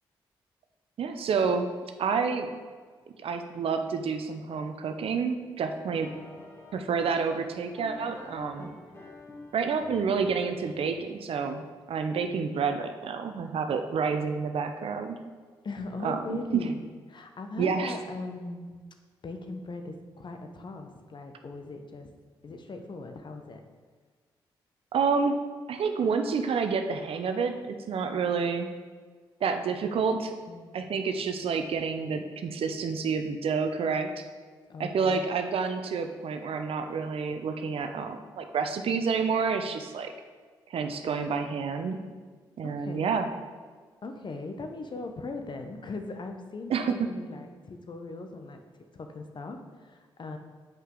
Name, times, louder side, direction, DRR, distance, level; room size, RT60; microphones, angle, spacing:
voice 1, 1.0-1.7 2.0-2.5 3.2-6.1 6.7-8.7 9.5-15.2 16.0-16.6 17.6-17.9 24.9-25.4 25.7-28.7 29.4-30.3 30.7-34.2 34.8-40.1 40.7-42.0 42.6-43.3 46.7-47.1, right 5 dB, 60° right, 7 dB, 0.7 m, -29 dB
sound 1, 6.0-11.3, left 2 dB, 25° left, 1.7 m, -48 dB
voice 2, 15.6-18.8 19.2-22.1 22.4-23.6 30.4-30.8 34.7-35.3 42.6-43.1 44.0-48.6 48.9-50.4, left 3 dB, 45° left, 5 dB, 0.9 m, -39 dB
7.5 x 5.4 x 3.8 m, 1.5 s
hypercardioid pair, 40°, 11 cm